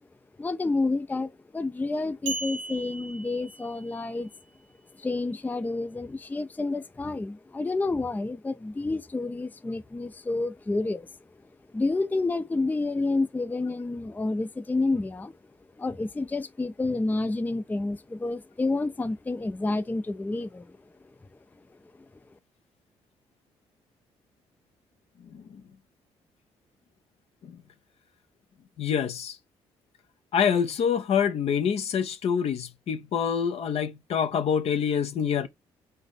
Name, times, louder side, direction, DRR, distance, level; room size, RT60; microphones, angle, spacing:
voice 1, 0.4-4.3 5.0-11.1 11.7-15.3 15.8-20.6, left 3 dB, 15° left, 0.4 m, -29 dB
sound 1, 2.3-4.1, right 4 dB, 90° right, 1.3 m, -37 dB
voice 2, 28.8-29.3 30.3-35.5, left 7 dB, 60° left, 0.7 m, -26 dB
4.0 x 2.6 x 3.7 m
hypercardioid pair, 50°, 12 cm